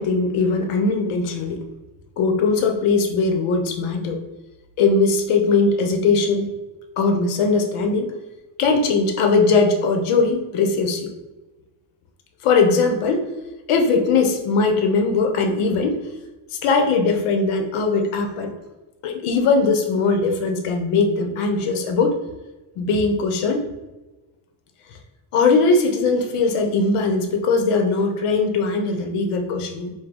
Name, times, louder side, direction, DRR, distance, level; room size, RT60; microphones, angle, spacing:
voice 1, 0.0-1.6 2.2-4.2 4.8-6.5 7.0-8.1 8.6-11.1 12.4-13.2 13.7-16.0 16.5-18.5 19.0-22.3 22.8-23.7 25.3-29.9, left 4 dB, 85° left, 4 dB, 0.9 m, -20 dB
4.9 x 2.3 x 3.7 m, 1.1 s
cardioid pair, 150°, 50 cm